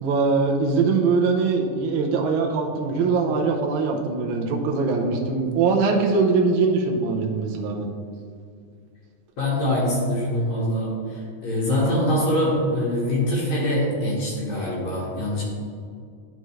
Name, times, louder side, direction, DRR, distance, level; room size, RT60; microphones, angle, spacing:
voice 1, 0.0-7.9, right 4 dB, 75° right, 1 dB, 1.2 m, -22 dB
voice 2, 9.4-15.4, left 1 dB, 70° left, -6 dB, 2.7 m, -24 dB
11.0 x 5.2 x 3.2 m, 2.2 s
omnidirectional pair, 3.4 m